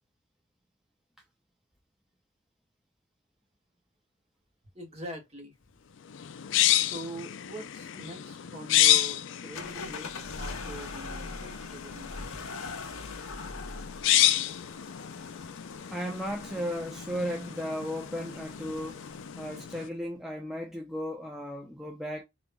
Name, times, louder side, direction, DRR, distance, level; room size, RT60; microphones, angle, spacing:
voice 1, 4.7-5.5 6.8-12.4, right 1 dB, 30° right, 1.5 m, -43 dB
sound 1, 6.1-19.9, left 13 dB, 60° left, 0.4 m, -30 dB
sound 2, 9.5-19.8, left 3 dB, 85° left, 0.9 m, -43 dB
voice 2, 15.9-19.1 19.4-22.2, equal, ahead, 0.6 m, -35 dB
5.3 x 3.0 x 2.2 m
head